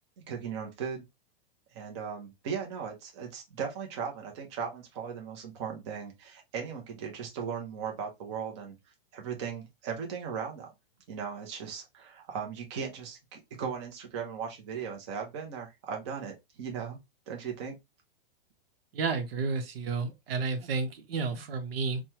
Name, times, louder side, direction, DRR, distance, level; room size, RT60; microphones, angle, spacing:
voice 1, 0.3-1.0 1.7-8.8 9.1-10.7 11.1-17.0 17.3-17.7, right 6 dB, 30° right, 0.7 m, -37 dB
voice 2, 18.9-22.0, right 4 dB, 80° right, 0.9 m, -31 dB
3.1 x 2.2 x 2.8 m
supercardioid pair, 170°, 29 cm